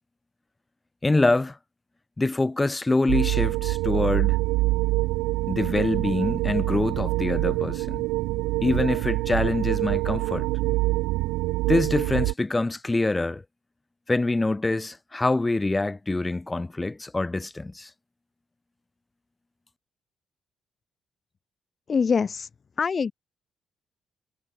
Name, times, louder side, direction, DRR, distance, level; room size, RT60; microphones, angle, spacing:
voice 1, 1.0-1.6 2.2-4.4 5.5-8.0 8.6-10.5 11.7-13.4 14.1-17.9, left 2 dB, 20° left, 2.3 m, -25 dB
sound 1, 3.1-12.3, right 21 dB, 85° right, 1.1 m, -25 dB
voice 2, 21.9-22.5 22.8-23.1, left 5 dB, 45° left, 0.9 m, -24 dB
hypercardioid pair, 50°, 0 cm